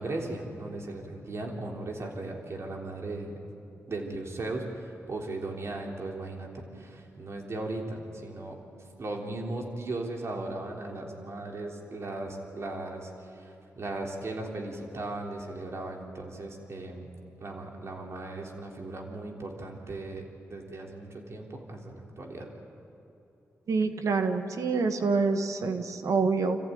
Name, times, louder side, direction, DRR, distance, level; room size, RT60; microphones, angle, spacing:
voice 1, 0.0-3.4 3.9-8.6 9.0-17.1 17.4-20.2 20.5-22.5, right 2 dB, 55° right, 1 dB, 3.5 m, -37 dB
voice 2, 23.7-26.6, right 4 dB, 80° right, 7 dB, 1.6 m, -26 dB
27.5 x 14.5 x 9.4 m, 3.0 s
cardioid pair, 70°, 5 cm